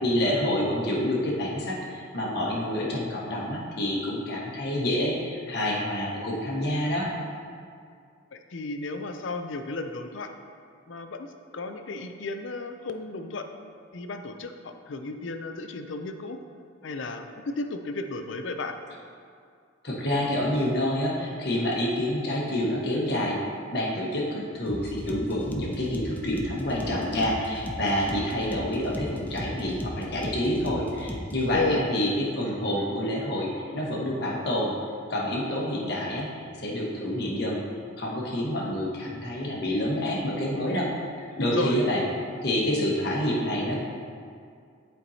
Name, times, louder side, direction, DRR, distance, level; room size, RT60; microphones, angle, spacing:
voice 1, 0.0-7.1 19.8-23.4 23.7-33.5 33.7-34.7 35.1-37.6 38.0-40.9 41.2-42.0 42.4-43.8, left 1 dB, 55° left, -4 dB, 1.2 m, -28 dB
voice 2, 8.3-10.3 10.9-11.3 11.5-13.5 13.9-16.4 16.8-18.8 31.5-32.1 41.4-41.8, left 3 dB, 70° left, 7 dB, 0.5 m, -33 dB
sound 1, 24.7-31.5, equal, 10° left, 0.4 m, -37 dB
11.5 x 4.5 x 2.8 m, 2.3 s
head